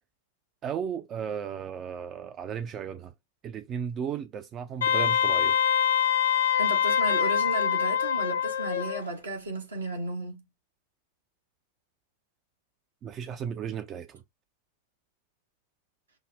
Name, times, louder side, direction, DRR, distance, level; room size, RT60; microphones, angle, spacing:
voice 1, 0.6-3.1 3.4-5.6 13.0-14.2, right 8 dB, 30° right, 0.4 m, -35 dB
Wind instrument woodwind instrument, 4.8-9.0, left 9 dB, 65° left, 0.4 m, -24 dB
voice 2, 6.6-10.4, right 2 dB, 70° right, 1.2 m, -34 dB
5.3 x 2.0 x 3.3 m
figure-of-eight pair, 90°, 0 cm